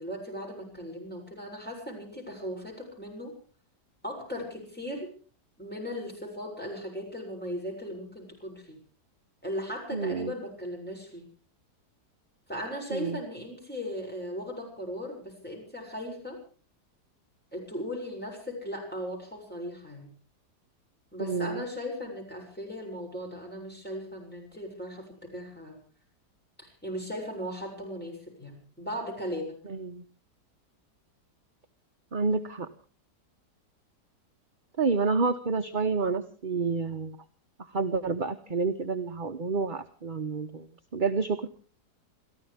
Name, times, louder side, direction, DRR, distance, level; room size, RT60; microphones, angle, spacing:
voice 1, 0.0-3.4 4.0-5.1 5.6-8.8 9.4-11.3 12.5-16.4 17.5-20.1 21.1-25.8 26.6-29.6, equal, 5° left, -1 dB, 7.1 m, -37 dB
voice 2, 9.9-10.3 12.9-13.2 21.2-21.6 29.6-30.0 32.1-32.7 34.8-37.2 37.6-41.5, right 4 dB, 35° right, 6 dB, 0.9 m, -29 dB
29.5 x 14.0 x 3.5 m, 0.41 s
omnidirectional pair, 1.8 m